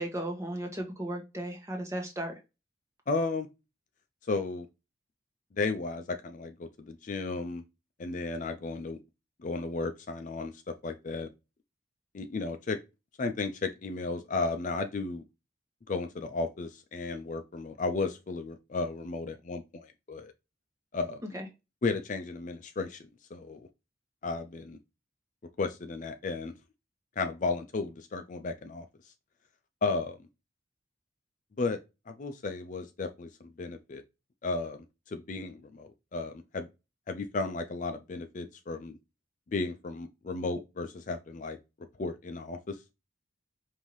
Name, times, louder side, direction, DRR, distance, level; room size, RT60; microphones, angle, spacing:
voice 1, 0.0-2.3 21.3-21.5, right 1 dB, 15° right, 1.1 m, -35 dB
voice 2, 3.1-3.5 4.3-4.7 5.6-7.6 8.0-9.0 9.4-11.3 12.1-12.8 13.2-15.2 15.9-20.3 20.9-21.2 21.8-23.7 24.2-24.8 25.6-26.5 27.2-28.9 29.8-30.2 31.6-31.8 32.1-33.3 33.6-34.0 34.4-34.8 35.1-36.7 37.1-38.9 39.5-41.6 42.0-42.8, left 3 dB, 40° left, 0.4 m, -34 dB
5.4 x 2.7 x 3.0 m
head